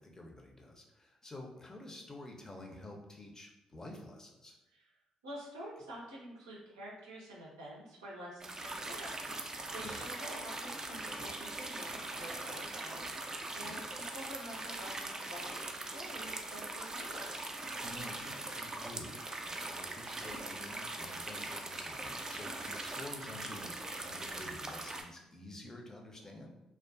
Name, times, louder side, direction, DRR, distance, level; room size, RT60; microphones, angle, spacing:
voice 1, 0.0-4.6 9.8-9.9 13.6-14.0 17.8-26.5, left 1 dB, 25° left, 1 dB, 0.5 m, -50 dB
voice 2, 5.2-17.5, right 1 dB, 85° right, -4 dB, 0.5 m, -48 dB
sound 1, 8.4-25.0, right 2 dB, 25° right, 0.4 m, -41 dB
2.3 x 2.3 x 2.3 m, 0.94 s
hypercardioid pair, 45°, 2 cm